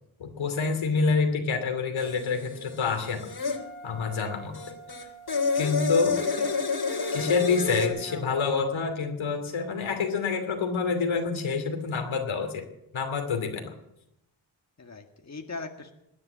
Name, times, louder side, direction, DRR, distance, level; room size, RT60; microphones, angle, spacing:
voice 1, 0.2-3.3 3.8-4.6 5.6-6.2 7.1-12.6 12.9-13.7, left 4 dB, 80° left, 5 dB, 2.8 m, -27 dB
sound 1, 2.0-3.6 4.5-7.9, left 4 dB, 50° left, 3.0 m, -29 dB
Wind instrument woodwind instrument, 3.5-8.8, right 4 dB, ahead, 4.0 m, -47 dB
voice 2, 6.1-6.7 7.5-8.4 14.8-15.9, left 3 dB, 35° left, 4 dB, 1.9 m, -41 dB
19.0 x 9.6 x 7.5 m, 0.83 s
cardioid pair, 55°, 47 cm